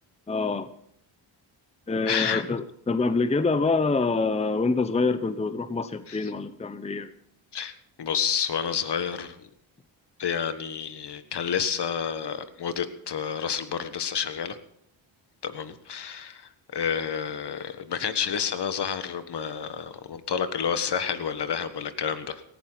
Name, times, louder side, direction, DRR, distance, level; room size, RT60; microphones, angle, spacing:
voice 1, 0.3-0.7 1.9-7.1, left 3 dB, 15° left, 12 dB, 0.8 m, -26 dB
voice 2, 2.1-2.4 6.1-6.3 7.5-9.5 10.2-14.6 15.4-22.4, left 7 dB, 55° left, 11 dB, 1.5 m, -30 dB
18.0 x 15.0 x 4.0 m, 0.69 s
cardioid pair, 85°, 47 cm